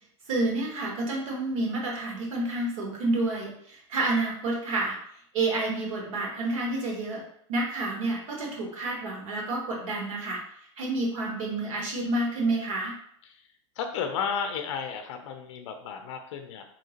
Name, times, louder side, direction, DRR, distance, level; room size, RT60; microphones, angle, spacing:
voice 1, 0.3-5.0 5.3-7.2 7.5-10.4 10.8-12.9, right 2 dB, 75° right, -2 dB, 1.2 m, -29 dB
voice 2, 13.8-16.6, left 6 dB, 60° left, 6 dB, 0.4 m, -33 dB
2.8 x 2.8 x 2.8 m, 0.68 s
supercardioid pair, 170°, 17 cm